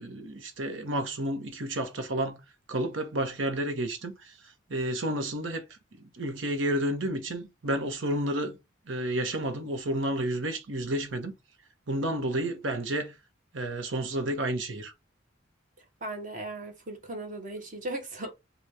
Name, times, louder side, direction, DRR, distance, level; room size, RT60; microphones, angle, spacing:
voice 1, 0.0-2.4 2.7-5.6 5.9-8.6 8.9-11.3 11.9-13.1 13.5-14.9, right 1 dB, 80° right, 1.0 m, -31 dB
voice 2, 16.0-18.3, right 1 dB, 45° right, 1.0 m, -37 dB
4.0 x 2.3 x 4.7 m
head